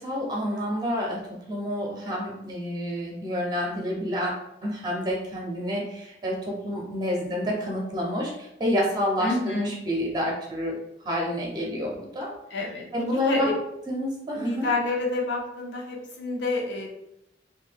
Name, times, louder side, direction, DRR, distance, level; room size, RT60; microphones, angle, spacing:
voice 1, 0.0-4.3 4.6-10.8 11.0-12.3 12.9-13.5 13.9-14.7, equal, 20° right, -2 dB, 0.6 m, -28 dB
voice 2, 9.2-9.7 12.5-13.5 14.3-16.9, left 2 dB, 80° left, 0 dB, 0.7 m, -29 dB
2.7 x 2.2 x 3.4 m, 0.80 s
head